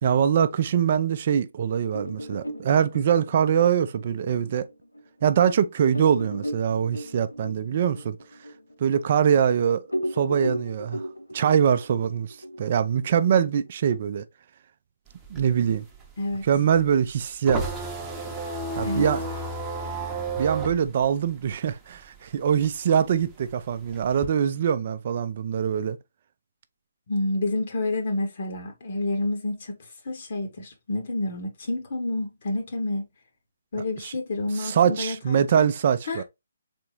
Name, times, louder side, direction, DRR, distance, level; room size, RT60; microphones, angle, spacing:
voice 1, 0.0-4.7 5.2-8.2 8.8-9.8 10.1-11.0 11.3-14.2 15.3-15.8 16.5-17.6 18.8-19.2 20.4-26.0 34.0-34.1 34.6-36.2, right 8 dB, 40° right, 0.4 m, -23 dB
sound 1, 1.9-5.0 5.4-5.5 5.9-9.5 9.8-13.9, equal, 80° left, 0.8 m, -35 dB
sound 2, 15.1-22.2 22.5-24.3, right 3 dB, 10° right, 0.8 m, -32 dB
voice 2, 27.1-33.1 33.7-35.7 36.1-36.2, left 2 dB, 45° left, 1.0 m, -29 dB
3.9 x 3.5 x 2.9 m
figure-of-eight pair, 140°, 0 cm